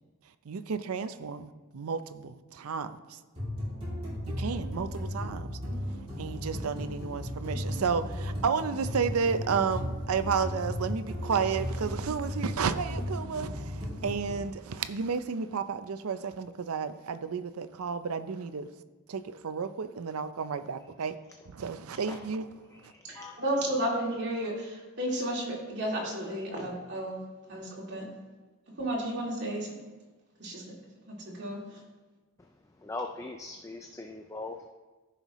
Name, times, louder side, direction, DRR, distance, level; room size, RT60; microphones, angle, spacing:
voice 1, 0.5-3.2 4.4-5.5 6.2-18.7 19.1-21.2 21.5-22.5 22.8-22.9, right 6 dB, 75° right, 0.5 m, -32 dB
sound 1, 3.4-14.4, left 1 dB, 25° right, 2.8 m, -35 dB
voice 2, 23.1-27.2 27.5-28.1 28.8-29.8 30.4-30.7 31.1-31.8, right 1 dB, 50° right, 2.4 m, -33 dB
voice 3, 32.9-34.7, left 2 dB, 15° left, 0.3 m, -39 dB
14.0 x 5.7 x 3.0 m
head